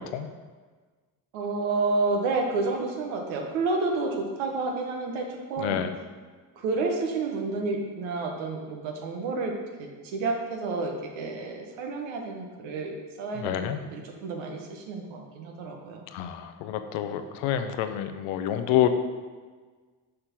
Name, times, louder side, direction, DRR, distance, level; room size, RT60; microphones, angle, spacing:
voice 1, 1.3-5.8 6.6-9.5 9.8-16.1, right 3 dB, 85° right, 2 dB, 1.1 m, -30 dB
voice 2, 5.6-6.0 13.3-13.8 16.1-18.9, left 11 dB, 90° left, 8 dB, 0.6 m, -28 dB
6.7 x 3.7 x 5.8 m, 1.4 s
supercardioid pair, 55°, 46 cm